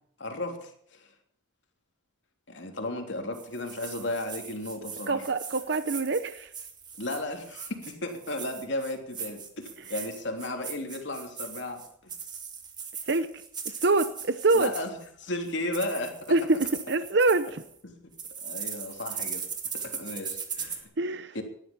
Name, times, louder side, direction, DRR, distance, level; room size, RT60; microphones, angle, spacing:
voice 1, 0.2-1.1 2.5-5.2 7.0-11.8 14.5-16.4 17.8-18.1 18.4-19.4 19.8-20.9 21.3-21.4, left 1 dB, 65° left, 3 dB, 3.3 m, -34 dB
sound 1, 3.3-15.1 15.5-17.7 18.1-20.8, right 6 dB, 20° right, 2.0 m, -39 dB
voice 2, 5.1-6.5 13.1-13.3 13.6-14.7 16.3-17.6 21.0-21.3, right 3 dB, 60° right, 11 dB, 0.8 m, -25 dB
18.5 x 12.0 x 5.4 m, 0.66 s
head